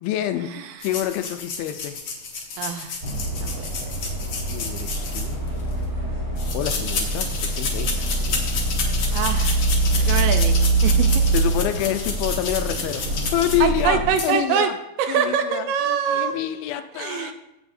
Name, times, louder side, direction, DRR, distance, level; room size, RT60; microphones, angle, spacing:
voice 1, 0.0-0.5 0.8-2.0 4.5-5.4 6.5-8.4 11.3-13.0 13.3-14.8 15.1-17.3, left 12 dB, 85° left, 9 dB, 2.5 m, -27 dB
sound 1, 0.8-5.7 6.4-13.8 14.1-14.3, left 4 dB, 55° left, 1.5 m, -30 dB
voice 2, 2.6-3.0 3.4-3.7 9.1-9.6 10.0-10.6 10.8-11.1 13.6-14.7 15.0-16.4 17.0-17.3, right 8 dB, 80° right, 7 dB, 2.2 m, -24 dB
sound 2, 3.0-14.1, right 2 dB, 25° right, 3.0 m, -24 dB
15.0 x 7.7 x 2.7 m, 0.92 s
omnidirectional pair, 4.2 m